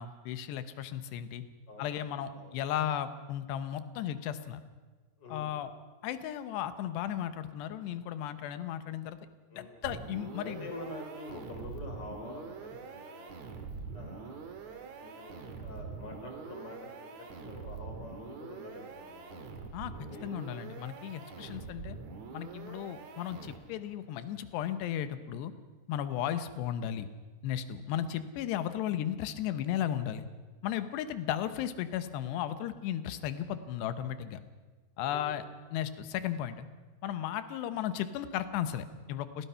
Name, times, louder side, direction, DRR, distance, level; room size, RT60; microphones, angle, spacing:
voice 1, 0.0-1.4 1.8-4.6 5.3-5.7 6.0-9.2 9.6-10.7 19.7-19.9 20.2-22.0 22.3-25.5 25.9-27.1 27.4-30.3 30.6-34.4 35.0-35.4 35.7-36.7 37.0-39.5, left 10 dB, 85° left, 11 dB, 3.2 m, -35 dB
voice 2, 1.7-2.6 5.2-5.6 9.5-9.7 10.4-13.5 13.9-19.5 19.9-20.3 21.3-21.5 35.0-35.4, left 2 dB, 25° left, 2 dB, 4.4 m, -47 dB
sound 1, 9.8-23.9, right 5 dB, 55° right, 2.6 m, -45 dB
28.0 x 18.5 x 5.7 m, 1.4 s
omnidirectional pair, 4.8 m